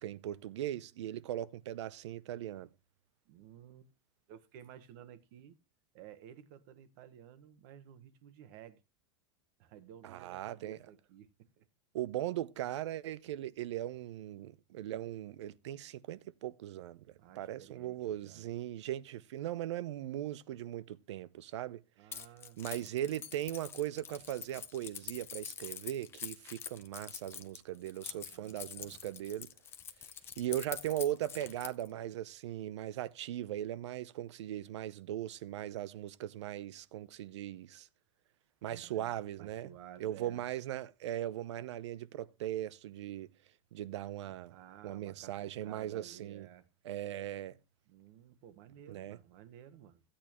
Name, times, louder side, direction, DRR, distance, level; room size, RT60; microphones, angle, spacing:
voice 1, 0.0-2.7 10.0-10.8 11.9-21.8 22.6-29.5 30.4-37.9 38.6-39.7 40.0-43.3 43.7-44.6 44.8-46.5 46.8-47.6 48.9-49.2, right 12 dB, 80° right, 0.7 m, -39 dB
voice 2, 3.2-3.9 4.3-5.6 5.9-8.8 9.6-11.7 17.2-18.5 22.0-22.6 28.0-29.0 38.7-40.4 44.5-46.7 47.9-50.0, right 10 dB, 45° right, 1.2 m, -54 dB
Keys jangling, 22.1-31.9, left 8 dB, 15° left, 0.7 m, -45 dB
15.5 x 8.7 x 3.0 m
supercardioid pair, 165°, 15 cm